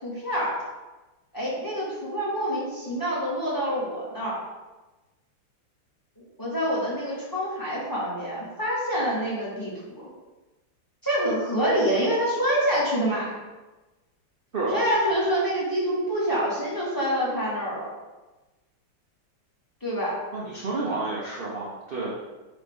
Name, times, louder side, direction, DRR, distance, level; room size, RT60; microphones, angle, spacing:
voice 1, 0.0-0.6 1.3-4.4 6.2-10.1 11.0-13.3 14.7-17.9 19.8-20.2, equal, 10° left, -6 dB, 1.7 m, -26 dB
voice 2, 20.3-22.1, right 3 dB, 45° right, -5 dB, 0.7 m, -30 dB
8.1 x 3.2 x 3.6 m, 1.1 s
omnidirectional pair, 2.1 m